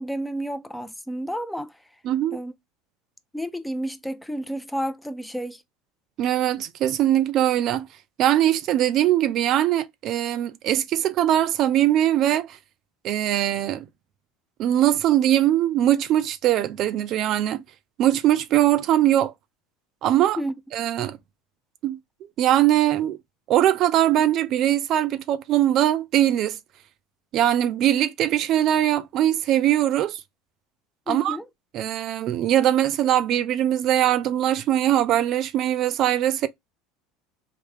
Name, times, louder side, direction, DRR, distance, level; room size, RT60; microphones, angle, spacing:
voice 1, 0.0-1.7 2.3-2.5 3.3-5.6 20.4-20.5 31.1-31.5, equal, 5° left, 0.5 m, -31 dB
voice 2, 2.0-2.4 6.2-7.9 8.2-12.6 13.0-13.8 14.6-17.6 18.0-19.3 20.0-20.4 20.7-21.2 21.8-23.2 23.5-26.6 27.3-30.2 31.1-31.4 31.7-36.5, right 12 dB, 55° right, 0.4 m, -21 dB
3.3 x 2.7 x 3.2 m
hypercardioid pair, 90°, 0 cm